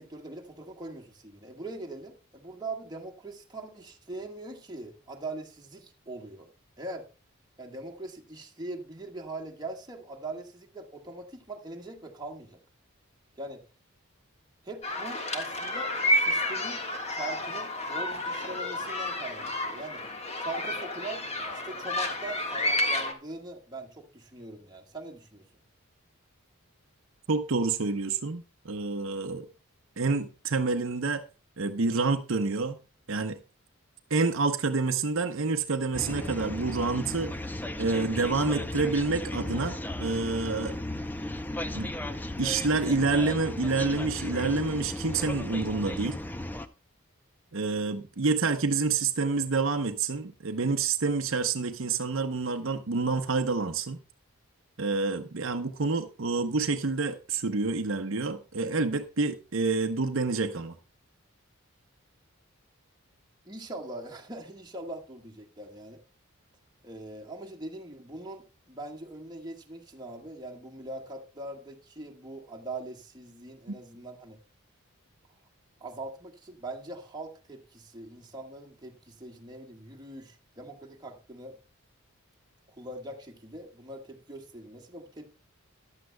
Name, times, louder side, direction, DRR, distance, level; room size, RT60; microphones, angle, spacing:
voice 1, 0.0-6.5 6.8-7.1 7.6-12.6 13.4-13.6 14.6-16.8 17.1-20.0 20.4-21.2 21.5-25.5 63.4-66.0 66.8-74.4 75.8-81.6 82.7-85.3, right 2 dB, 20° right, 1.5 m, -41 dB
sound 1, 14.8-23.1, left 1 dB, 30° left, 1.5 m, -30 dB
voice 2, 27.3-29.5 30.0-31.2 31.6-32.8 33.1-33.4 34.1-37.3 37.8-40.8 41.7-41.9 42.4-46.2 47.5-54.0 54.8-60.8, right 4 dB, 60° right, 0.8 m, -28 dB
sound 2, 35.9-46.7, left 1 dB, 10° left, 0.5 m, -35 dB
14.0 x 10.5 x 2.2 m
head